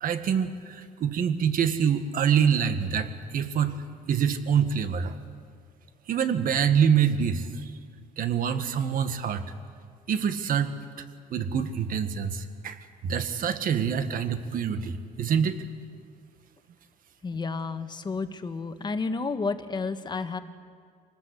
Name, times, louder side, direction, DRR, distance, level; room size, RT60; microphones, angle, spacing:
voice 1, 0.0-3.8 4.1-5.2 6.1-7.7 8.2-9.4 10.1-10.8 11.3-12.8 13.0-15.6, right 7 dB, 55° right, 9 dB, 1.7 m, -25 dB
voice 2, 17.2-20.4, left 4 dB, 25° left, 9 dB, 1.5 m, -31 dB
25.0 x 19.0 x 8.2 m, 2.1 s
cardioid pair, 110°, 17 cm